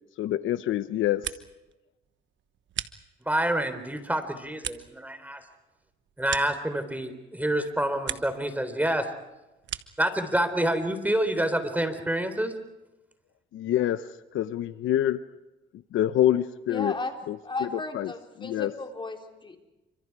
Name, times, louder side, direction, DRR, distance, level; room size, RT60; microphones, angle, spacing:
voice 1, 0.2-1.2 13.5-14.0 14.3-15.2 15.9-16.9 17.3-18.1 18.4-18.7, left 12 dB, 80° left, 13 dB, 0.9 m, -26 dB
sound 1, 0.9-1.7 2.0-3.5 3.9-7.2 7.5-8.5 8.8-10.1, right 11 dB, 70° right, 1.3 m, -39 dB
voice 2, 3.3-5.4 6.2-9.1 10.0-12.5, right 1 dB, 10° right, 9 dB, 3.9 m, -27 dB
voice 3, 16.7-17.2 17.4-19.6, left 2 dB, 25° left, 3 dB, 4.1 m, -35 dB
29.0 x 26.0 x 4.8 m, 1.0 s
cardioid pair, 90°, 20 cm